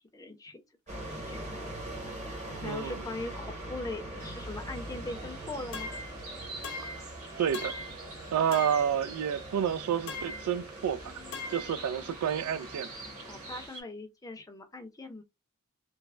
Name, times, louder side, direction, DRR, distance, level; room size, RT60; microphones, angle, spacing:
voice 1, 0.1-0.6 1.1-1.9 2.5-5.9 13.2-15.2, left 2 dB, 15° left, 0.5 m, -41 dB
sound 1, 0.9-13.7, right 1 dB, 30° right, 0.9 m, -42 dB
voice 2, 2.6-3.0 6.8-6.9 7.4-7.7 8.3-11.2 11.5-12.9, right 8 dB, 90° right, 0.3 m, -30 dB
sound 2, 4.2-13.8, right 3 dB, 70° right, 1.2 m, -48 dB
sound 3, 5.7-6.2 6.6-7.1 7.5-8.0 8.5-9.0 10.1-10.5 11.3-11.8, left 3 dB, 60° left, 0.6 m, -39 dB
3.2 x 2.0 x 2.3 m
head